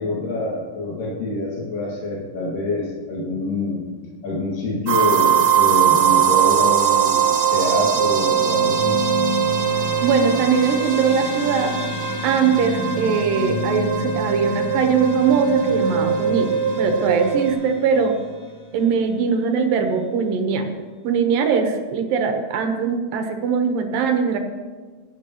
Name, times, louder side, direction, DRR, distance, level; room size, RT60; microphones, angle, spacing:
voice 1, 0.0-3.9 4.2-9.0, left 2 dB, 75° left, -4 dB, 3.6 m, -26 dB
sound 1, 4.9-17.5, right 8 dB, 50° right, 1.8 m, -21 dB
sound 2, 8.2-19.0, left 3 dB, 55° left, 1.1 m, -31 dB
voice 2, 10.0-11.7 12.2-18.2 18.7-20.7 21.0-24.4, right 6 dB, 90° right, 5 dB, 2.8 m, -21 dB
17.5 x 12.0 x 3.0 m, 1.4 s
omnidirectional pair, 3.9 m